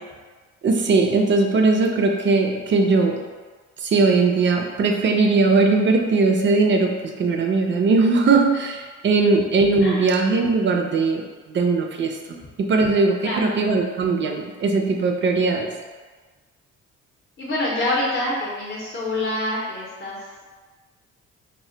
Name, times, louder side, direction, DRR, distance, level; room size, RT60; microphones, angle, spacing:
voice 1, 0.6-3.2 3.8-12.2 12.6-15.7, right 3 dB, 40° right, 3 dB, 0.4 m, -19 dB
voice 2, 13.2-13.6 17.4-20.2, left 1 dB, 35° left, -5 dB, 0.7 m, -26 dB
2.1 x 2.1 x 3.7 m, 1.4 s
cardioid pair, 90°, 30 cm